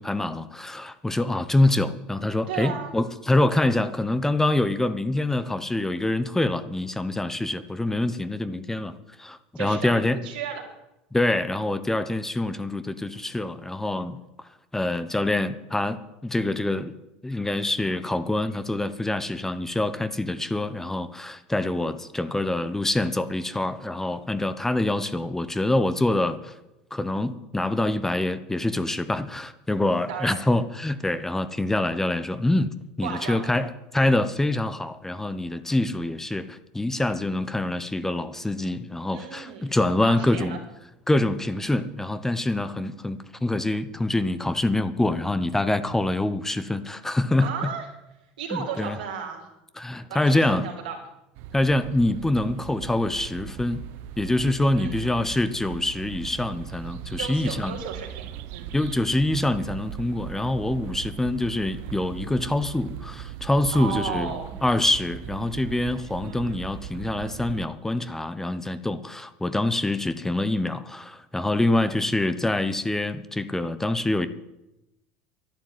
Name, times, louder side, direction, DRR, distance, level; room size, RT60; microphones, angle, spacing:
voice 1, 0.0-10.2 11.1-14.2 14.7-16.9 17.2-26.5 26.9-40.6 41.1-47.7 48.5-49.0 49.8-50.6 51.5-53.8 54.2-57.8 58.7-64.3 64.6-74.3, left 2 dB, 10° left, 12 dB, 1.0 m, -25 dB
voice 2, 2.5-2.9 9.6-10.6 30.1-30.4 33.0-33.5 39.1-40.6 47.4-47.9 48.4-49.5 50.1-51.0 54.8-55.2 57.1-58.7 63.7-64.5, right 7 dB, 85° right, 0 dB, 3.9 m, -34 dB
sound 1, 51.3-67.7, right 10 dB, 65° right, 0.8 m, -39 dB
11.5 x 10.5 x 9.3 m, 0.92 s
hypercardioid pair, 85°, 4 cm